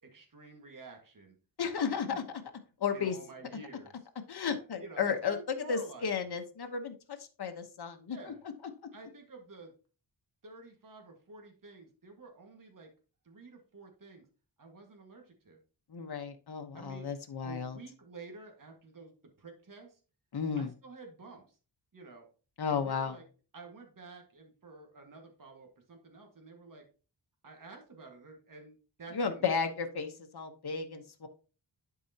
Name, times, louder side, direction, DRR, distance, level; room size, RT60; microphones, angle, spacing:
voice 1, 0.0-1.3 2.9-4.1 4.8-6.3 8.1-8.4 8.9-9.7 10.4-12.9 13.2-14.3 14.6-15.6 16.7-17.1 17.4-19.1 19.4-20.0 20.6-21.6 21.9-22.3 22.7-23.2 23.5-26.9 27.4-29.5, right 3 dB, 45° right, 2 dB, 1.8 m, -50 dB
voice 2, 1.6-2.2 2.8-3.2 4.3-5.4 5.7-6.9 7.2-8.2 15.9-17.8 20.3-20.7 22.6-23.2 29.1-31.3, left 6 dB, 55° left, 6 dB, 1.2 m, -33 dB
11.0 x 4.8 x 2.9 m, 0.36 s
wide cardioid pair, 120°, 45 cm